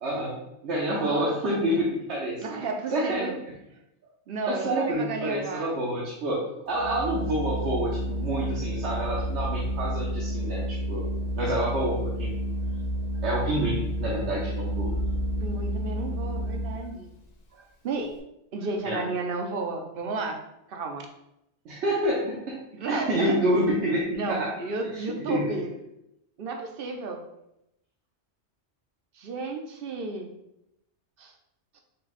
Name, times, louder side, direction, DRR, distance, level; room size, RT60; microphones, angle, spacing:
voice 1, 0.0-2.4 2.9-3.3 4.5-11.0 11.3-12.3 13.2-14.9 18.8-19.1 21.6-22.6 22.9-24.5 24.9-25.5, right 1 dB, 75° right, -5 dB, 1.2 m, -28 dB
voice 2, 0.9-1.3 2.4-3.3 4.3-5.7 15.4-17.1 17.5-18.1 18.5-20.4 20.7-21.1 22.7-23.4 24.1-25.7 26.4-27.2 29.2-30.3 31.2-31.3 31.7-31.8, right 3 dB, 60° right, 3 dB, 0.8 m, -33 dB
Organ, 6.7-17.0, equal, 45° left, 0.7 m, -30 dB
5.5 x 2.3 x 4.1 m, 0.83 s
omnidirectional pair, 1.2 m